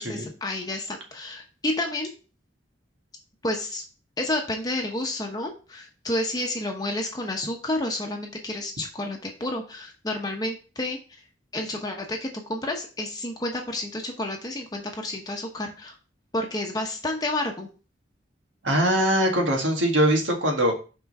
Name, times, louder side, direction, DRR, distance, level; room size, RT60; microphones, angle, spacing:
voice 1, 0.0-2.1 3.4-3.8 4.2-11.0 11.5-15.9 16.3-17.7, left 1 dB, 20° left, 2 dB, 0.9 m, -30 dB
voice 2, 18.6-20.8, equal, 85° right, 2 dB, 1.7 m, -22 dB
5.9 x 3.8 x 5.3 m, 0.34 s
head